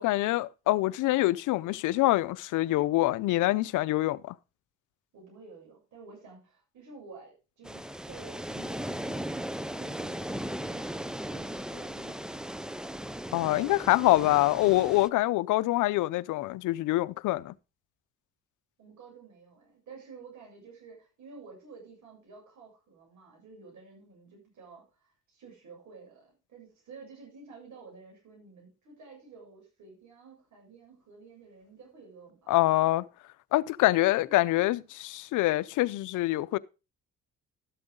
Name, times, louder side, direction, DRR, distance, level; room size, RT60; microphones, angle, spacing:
voice 1, 0.0-4.4 13.3-17.5 32.5-33.1 33.5-36.6, left 17 dB, 85° left, 0.6 m, -25 dB
voice 2, 5.1-12.6 18.8-32.8 34.2-34.4, right 4 dB, 70° right, 7.4 m, -51 dB
sound 1, 7.6-15.1, equal, ahead, 0.5 m, -37 dB
13.0 x 7.8 x 3.7 m
cardioid pair, 90°, 30 cm